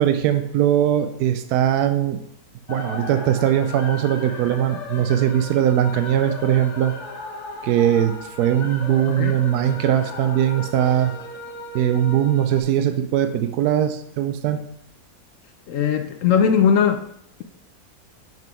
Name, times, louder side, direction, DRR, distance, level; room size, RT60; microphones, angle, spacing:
voice 1, 0.0-2.2 2.7-6.9 7.6-11.1 11.7-14.6, right 10 dB, 75° right, 9 dB, 1.1 m, -20 dB
sound 1, 2.7-12.6, left 3 dB, 50° left, 1.1 m, -36 dB
voice 2, 15.7-17.0, left 7 dB, 70° left, 7 dB, 0.8 m, -19 dB
6.1 x 5.3 x 4.4 m, 0.72 s
omnidirectional pair, 1.7 m